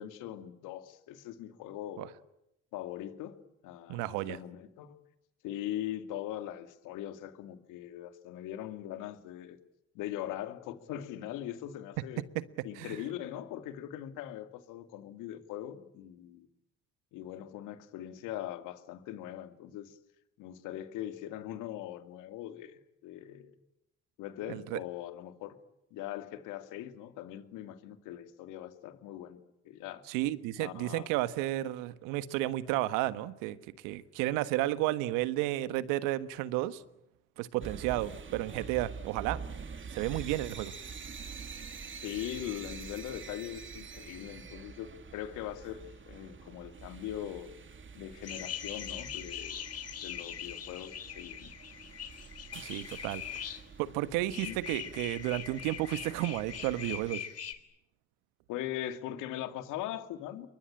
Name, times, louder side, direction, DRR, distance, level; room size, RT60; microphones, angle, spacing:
voice 1, 0.0-2.1 2.7-5.0 5.4-9.6 9.9-12.2 12.6-16.5 17.1-20.0 20.4-23.5 24.2-25.5 25.9-29.4 29.6-30.0 30.6-31.1 32.7-32.8 37.9-38.0 42.0-47.5 47.9-49.6 50.0-51.5 54.4-54.6 58.5-60.5, left 12 dB, 75° left, 2.5 m, -41 dB
voice 2, 3.9-4.4 12.7-13.0 24.5-24.8 30.1-33.6 33.8-36.8 37.4-39.4 39.9-40.7 52.6-53.2 53.8-57.2, right 16 dB, 75° right, 1.4 m, -32 dB
sound 1, 37.6-57.1, right 5 dB, 40° right, 2.7 m, -46 dB
sound 2, 48.2-53.6 54.3-57.5, left 9 dB, 50° left, 3.6 m, -41 dB
29.0 x 23.0 x 8.8 m
hypercardioid pair, 55°, 31 cm